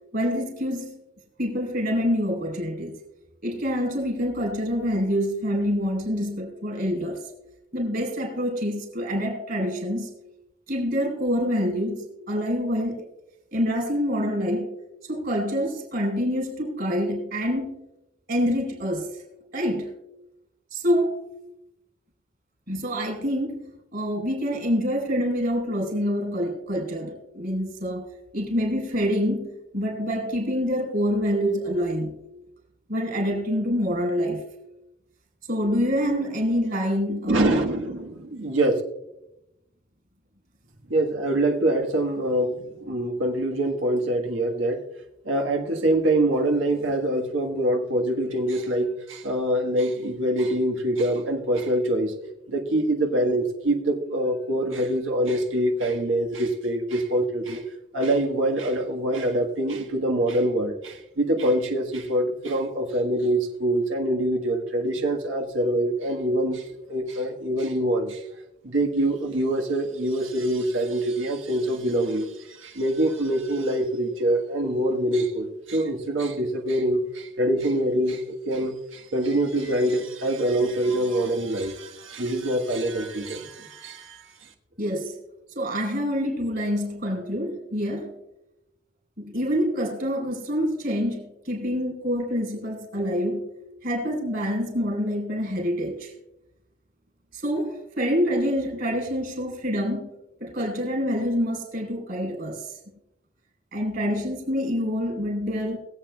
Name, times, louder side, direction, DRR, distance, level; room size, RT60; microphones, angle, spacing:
voice 1, 0.1-1.0 1.4-3.0 3.4-7.2 7.7-10.1 10.7-13.0 13.5-14.8 15.0-17.9 18.3-19.2 19.5-19.9 20.7-21.2 22.7-32.2 32.9-34.4 35.5-37.5 84.8-85.2 85.5-88.1 89.2-93.5 93.8-96.1 97.3-100.1 100.4-102.7 103.7-105.8, equal, 55° right, 2 dB, 4.0 m, -26 dB
voice 2, 37.3-38.8 40.9-44.8 45.2-52.1 52.5-57.6 57.9-68.2 68.6-84.3, right 1 dB, 80° right, 1 dB, 1.5 m, -25 dB
22.0 x 8.1 x 2.3 m, 0.88 s
head